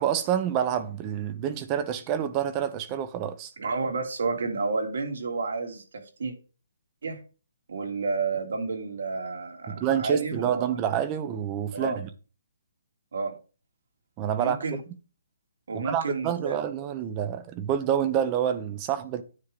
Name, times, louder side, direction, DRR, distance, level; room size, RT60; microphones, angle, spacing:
voice 1, 0.0-3.5 9.7-12.1 14.2-14.6 15.7-19.2, right 9 dB, 15° right, 0.7 m, -27 dB
voice 2, 3.6-5.8 6.2-6.3 7.0-7.2 7.7-10.7 11.7-12.0 13.1-13.3 14.4-14.8 15.7-16.6, right 4 dB, 70° right, 2.9 m, -30 dB
9.7 x 3.7 x 6.7 m
hypercardioid pair, 175°, 0 cm